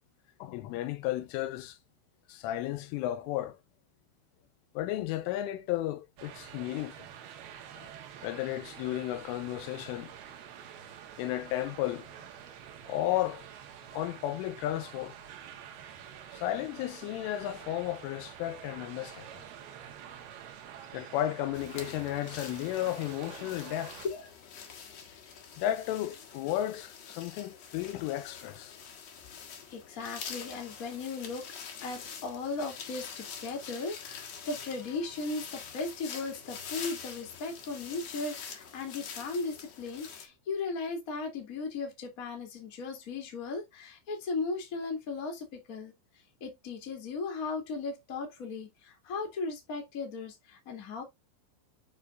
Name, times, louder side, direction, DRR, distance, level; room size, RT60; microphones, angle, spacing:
voice 1, 0.4-1.8 2.3-3.6 4.8-7.1 7.8-7.9 8.2-10.1 11.2-12.1 12.9-13.5 13.9-15.2 16.3-19.3 20.9-23.9 25.6-28.7, left 13 dB, 90° left, 3.3 m, -33 dB
sound 1, 6.2-24.1, right 9 dB, 65° right, 2.8 m, -48 dB
sound 2, 21.5-40.3, left 6 dB, 70° left, 1.6 m, -45 dB
voice 2, 29.7-31.5 31.8-45.9 46.4-51.0, left 4 dB, 30° left, 1.6 m, -37 dB
7.7 x 6.6 x 2.6 m
omnidirectional pair, 5.7 m